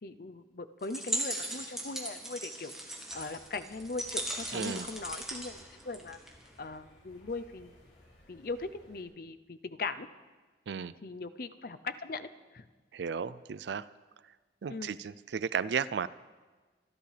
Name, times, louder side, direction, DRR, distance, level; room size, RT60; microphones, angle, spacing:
voice 1, 0.0-6.2 6.6-7.8 8.3-10.1 11.0-12.3 12.5-12.6 14.7-14.9, left 3 dB, 55° left, 11 dB, 0.6 m, -40 dB
sound 1, 0.8-6.5, right 1 dB, 5° right, 1.4 m, -38 dB
sound 2, 3.1-9.0, left 1 dB, 70° left, 3.8 m, -59 dB
voice 2, 4.5-4.9 10.7-10.9 12.9-13.8 14.6-16.1, right 6 dB, 75° right, 18 dB, 0.4 m, -34 dB
26.0 x 11.5 x 3.4 m, 1.3 s
head